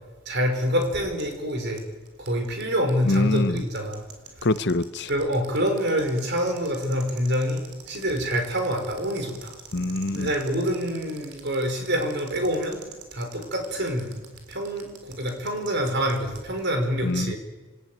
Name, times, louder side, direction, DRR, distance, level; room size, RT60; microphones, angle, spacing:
voice 1, 0.2-1.8 2.2-4.0 5.1-7.6 7.9-9.5 10.1-12.8 13.1-14.2 14.5-17.4, equal, 50° right, 4 dB, 5.2 m, -26 dB
sound 1, 0.6-16.4, right 8 dB, 85° right, 3.9 m, -46 dB
voice 2, 3.1-3.6 4.4-5.1 9.7-10.3 17.0-17.3, left 2 dB, 50° left, 14 dB, 0.8 m, -24 dB
27.0 x 15.5 x 9.3 m, 1.3 s
head